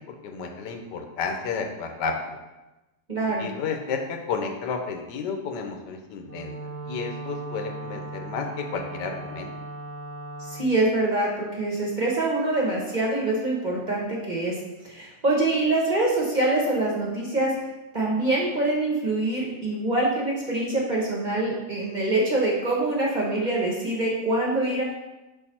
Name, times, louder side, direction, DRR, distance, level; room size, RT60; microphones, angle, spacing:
voice 1, 0.1-2.4 3.4-6.5 6.8-9.5, left 5 dB, 90° left, 4 dB, 1.4 m, -32 dB
voice 2, 3.1-3.5 10.4-14.6 14.8-17.5 17.9-24.8, right 2 dB, 30° right, -3 dB, 1.1 m, -25 dB
Wind instrument woodwind instrument, 6.2-10.7, right 2 dB, 55° right, 1.1 m, -37 dB
5.6 x 4.5 x 4.2 m, 1.1 s
omnidirectional pair, 1.8 m